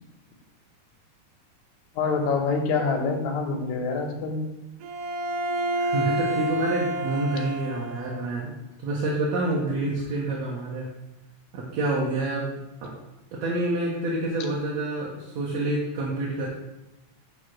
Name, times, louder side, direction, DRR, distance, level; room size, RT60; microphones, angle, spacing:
voice 1, 2.0-4.4, left 4 dB, 70° left, 2 dB, 2.4 m, -26 dB
Bowed string instrument, 4.8-8.3, right 1 dB, 90° right, 2.3 m, -29 dB
voice 2, 5.7-8.5 8.8-10.9 11.5-12.5 12.8-12.9 13.4-16.5, right 2 dB, 65° right, -5 dB, 2.4 m, -27 dB
9.8 x 3.7 x 6.2 m, 0.95 s
omnidirectional pair, 3.5 m